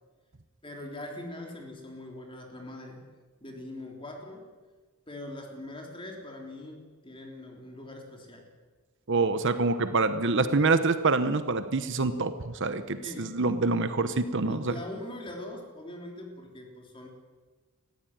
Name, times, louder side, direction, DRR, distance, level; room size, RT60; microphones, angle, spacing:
voice 1, 0.6-3.0 3.4-4.5 5.1-8.5 13.0-13.4 14.4-17.1, left 1 dB, 25° left, 1 dB, 3.7 m, -42 dB
voice 2, 9.1-14.7, right 3 dB, 55° right, 11 dB, 1.0 m, -26 dB
19.0 x 15.0 x 9.4 m, 1.4 s
head